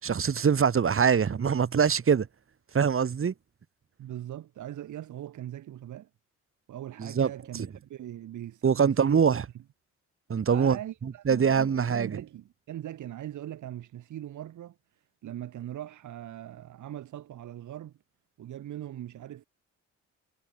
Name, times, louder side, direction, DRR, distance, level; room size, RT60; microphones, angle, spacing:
voice 1, 0.0-2.3 2.7-3.3 7.0-7.7 8.6-9.4 10.3-10.8 11.3-12.1, right 7 dB, 45° right, 5.6 m, -24 dB
voice 2, 4.0-6.1 6.7-9.2 9.5-9.6 10.5-14.8 15.2-17.9 18.4-19.4, right 12 dB, 75° right, 7.9 m, -40 dB
cardioid pair, 90°, 30 cm